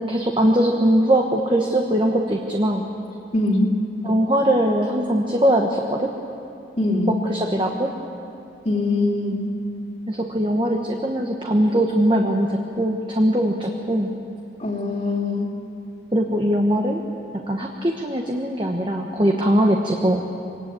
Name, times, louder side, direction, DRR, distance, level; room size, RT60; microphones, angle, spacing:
voice 1, 0.1-2.8 4.0-6.1 7.3-7.9 10.1-14.1 16.1-17.0 17.3-20.2, right 1 dB, 25° right, 2 dB, 1.2 m, -21 dB
voice 2, 3.3-3.7 6.8-7.1 8.6-9.4 14.6-15.5, left 2 dB, 40° left, -6 dB, 2.6 m, -22 dB
24.0 x 19.0 x 8.4 m, 2.7 s
head